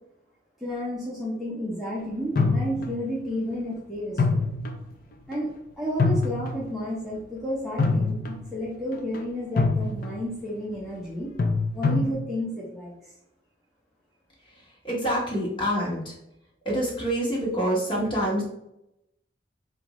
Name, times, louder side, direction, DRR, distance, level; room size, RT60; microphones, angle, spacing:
voice 1, 0.6-4.5 5.3-5.5 5.8-11.3 11.7-12.9, equal, ahead, -7 dB, 0.7 m, -31 dB
sound 1, 2.4-3.2 4.2-4.9 5.3-5.4 6.0-6.7 7.8-8.6 8.9-9.2 9.6-10.2 11.4-12.1, left 3 dB, 50° left, 0.5 m, -25 dB
voice 2, 14.8-16.1 16.6-18.4, equal, 25° left, -4 dB, 1.2 m, -26 dB
4.5 x 2.5 x 3.0 m, 0.82 s
head